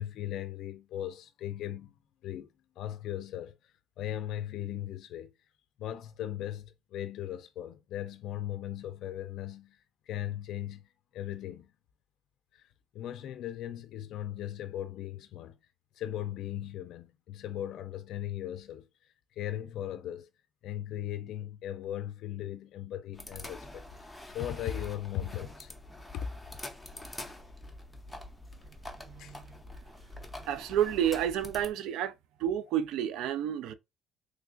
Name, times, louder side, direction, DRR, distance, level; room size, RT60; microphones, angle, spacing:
voice 1, 0.0-1.9 2.2-2.5 2.8-5.3 5.8-9.8 10.1-11.7 12.5-12.7 12.9-15.6 16.0-20.3 20.6-25.7 26.1-26.3 29.2-29.3, left 11 dB, 60° left, 0.4 m, -38 dB
sound 1, 23.1-31.7, left 1 dB, 5° left, 0.5 m, -46 dB
voice 2, 30.5-32.1 32.4-33.7, right 10 dB, 85° right, 0.4 m, -30 dB
3.2 x 2.3 x 3.7 m
cardioid pair, 175°, 0 cm